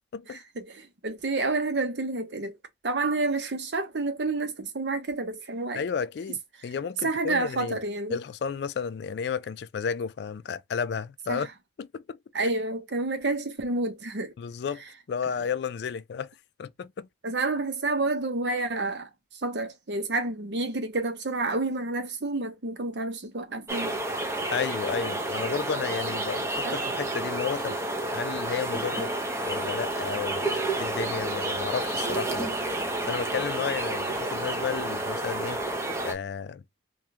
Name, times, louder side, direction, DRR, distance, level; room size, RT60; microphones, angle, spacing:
voice 1, 0.3-2.5 2.8-5.8 7.0-8.2 11.3-11.5 12.3-14.3 17.2-19.1 19.4-23.9 26.6-26.8, right 2 dB, 65° right, 0.8 m, -29 dB
voice 2, 5.7-7.8 8.1-11.5 11.8-12.2 14.4-14.8 15.1-16.3 16.6-17.1 24.5-27.8 28.1-29.1 29.4-32.5 33.1-35.8 36.0-36.6, left 6 dB, 60° left, 0.3 m, -32 dB
sound 1, 23.7-36.1, right 2 dB, 15° right, 0.5 m, -30 dB
3.4 x 2.3 x 2.8 m
head